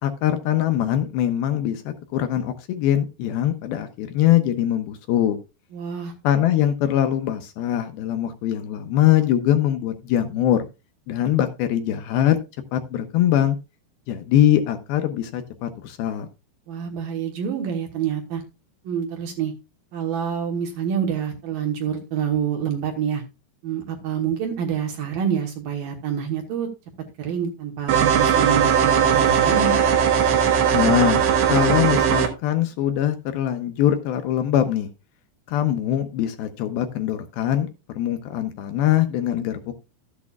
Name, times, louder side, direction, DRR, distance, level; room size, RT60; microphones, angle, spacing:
voice 1, 0.0-5.4 6.2-10.7 11.1-12.4 12.7-13.6 14.1-16.3 30.7-34.9 35.5-37.7 38.0-39.7, left 11 dB, 80° left, 8 dB, 2.2 m, -22 dB
voice 2, 5.7-6.1 16.7-18.4 18.8-19.5 19.9-23.2 23.6-26.7 27.2-29.8, right 8 dB, 65° right, 2 dB, 2.5 m, -27 dB
sound 1, 27.9-32.3, right 8 dB, 85° right, 3.7 m, -18 dB
13.5 x 8.4 x 2.4 m, 0.27 s
omnidirectional pair, 5.1 m